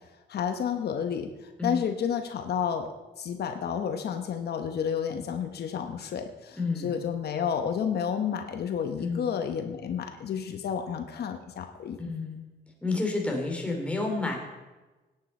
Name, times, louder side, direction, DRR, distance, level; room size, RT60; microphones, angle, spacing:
voice 1, 0.3-12.1, left 7 dB, 65° left, 6 dB, 1.0 m, -31 dB
voice 2, 6.5-6.9 9.0-9.3 12.0-12.4 12.8-14.4, left 3 dB, 5° left, 0 dB, 3.1 m, -30 dB
18.0 x 9.7 x 4.4 m, 1.2 s
cardioid pair, 110°, 18 cm